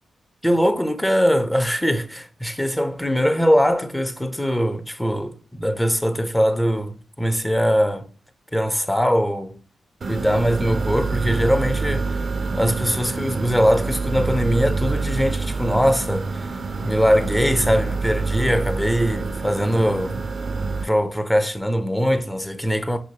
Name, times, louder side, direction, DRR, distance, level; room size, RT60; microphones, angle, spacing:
voice 1, 0.4-8.1 8.5-9.6 10.1-12.1 12.5-16.5 16.8-20.2 20.8-23.0, equal, 10° left, 0.7 m, -21 dB
sound 1, 10.0-20.8, right 4 dB, 55° right, 0.4 m, -26 dB
5.5 x 3.0 x 2.8 m
supercardioid pair, 40°, 0 cm